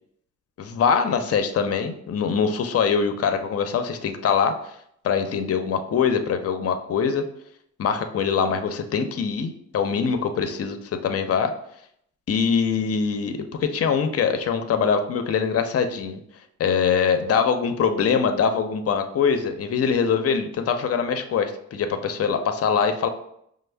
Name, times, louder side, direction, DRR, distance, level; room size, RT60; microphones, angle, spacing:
voice 1, 0.6-4.5 5.0-7.3 7.8-11.5 12.3-16.2 16.6-23.1, left 6 dB, 55° left, 7 dB, 0.6 m, -23 dB
5.1 x 2.0 x 3.3 m, 0.72 s
cardioid pair, 70°, 30 cm